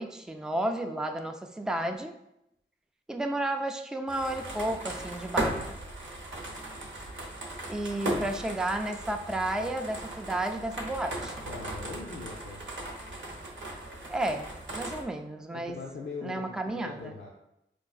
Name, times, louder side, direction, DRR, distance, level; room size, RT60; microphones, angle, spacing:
voice 1, 0.0-2.1 3.1-5.8 7.7-11.5 14.1-15.8 16.2-17.1, right 1 dB, 5° right, 5 dB, 0.3 m, -32 dB
sound 1, 4.1-15.0, right 1 dB, 75° right, 0.7 m, -37 dB
voice 2, 11.4-12.6 15.5-17.3, left 3 dB, 75° left, -3 dB, 0.5 m, -41 dB
4.6 x 2.4 x 2.3 m, 0.83 s
cardioid pair, 50°, 20 cm